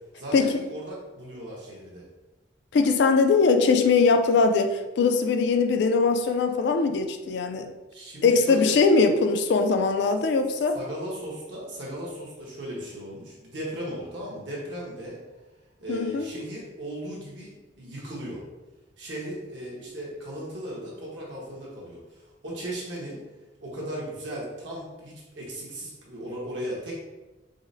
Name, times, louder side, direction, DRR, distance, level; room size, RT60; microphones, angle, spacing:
voice 1, 0.2-2.0 7.9-8.8 10.7-15.2 15.8-18.4 19.0-23.2 23.6-27.0, equal, 75° right, -5 dB, 1.1 m, -37 dB
voice 2, 2.7-7.7 8.2-10.8 15.9-16.3, left 4 dB, 60° left, 7 dB, 0.3 m, -21 dB
4.9 x 2.0 x 2.6 m, 1.1 s
head